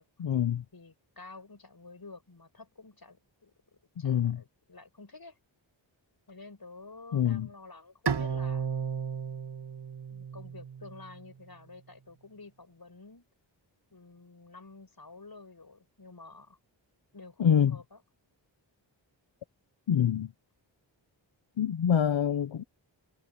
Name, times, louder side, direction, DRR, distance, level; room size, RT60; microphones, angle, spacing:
voice 1, 0.2-0.6 4.0-4.4 7.1-7.5 17.4-17.8 19.9-20.3 21.6-22.6, left 8 dB, 80° left, 0.9 m, -25 dB
voice 2, 0.7-3.5 4.0-5.4 6.3-8.7 10.1-13.3 13.9-16.6 17.1-18.0, left 3 dB, 50° left, 7.7 m, -50 dB
Bowed string instrument, 8.1-11.3, right 6 dB, 60° right, 1.1 m, -34 dB
cardioid pair, 45°, 46 cm